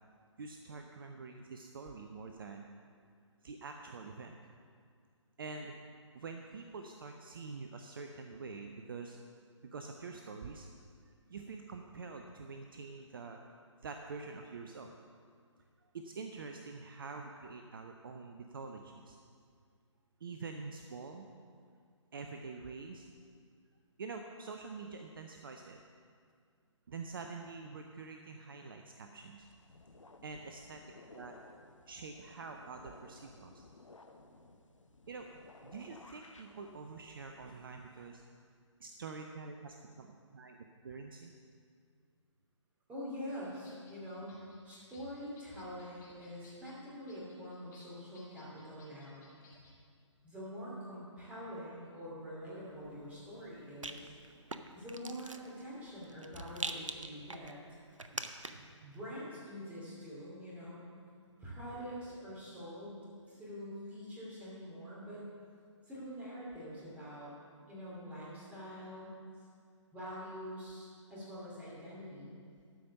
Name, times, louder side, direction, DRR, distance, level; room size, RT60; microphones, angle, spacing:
voice 1, 0.4-2.6 3.4-4.4 5.4-5.8 6.1-9.2 9.6-10.7 11.1-13.4 13.8-15.0 15.8-19.2 20.2-21.3 22.1-23.1 24.0-25.8 26.9-29.5 30.2-30.8 31.1-31.3 31.9-33.6 35.1-35.3 35.6-38.2 38.8-40.6 40.8-41.3 49.5-49.6 58.0-58.6, right 4 dB, 45° right, 4 dB, 0.6 m, -46 dB
sound 1, 29.4-38.2, left 2 dB, 80° left, 0.9 m, -58 dB
voice 2, 42.9-49.3 50.2-54.1 54.7-57.5 58.8-60.8 61.4-65.3 65.8-67.3 67.7-69.1 69.9-72.3, equal, 10° right, -7 dB, 2.6 m, -45 dB
sound 2, 43.3-49.8, left 3 dB, 35° left, 2.3 m, -64 dB
Rattle, 52.7-58.8, right 3 dB, 85° right, 0.7 m, -45 dB
12.5 x 5.1 x 7.0 m, 2.2 s
figure-of-eight pair, 140°, 16 cm